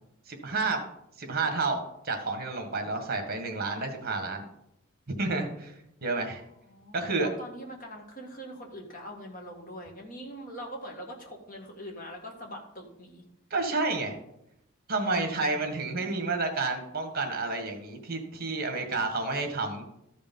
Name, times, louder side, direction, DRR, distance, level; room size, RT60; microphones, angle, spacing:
voice 1, 0.3-0.8 1.2-4.4 5.2-5.8 6.0-6.4 6.9-7.3 13.5-14.2 14.9-19.8, right 3 dB, 50° right, 5 dB, 1.6 m, -30 dB
voice 2, 6.6-13.2, equal, 40° left, 1 dB, 1.9 m, -43 dB
13.5 x 5.1 x 5.5 m, 0.81 s
head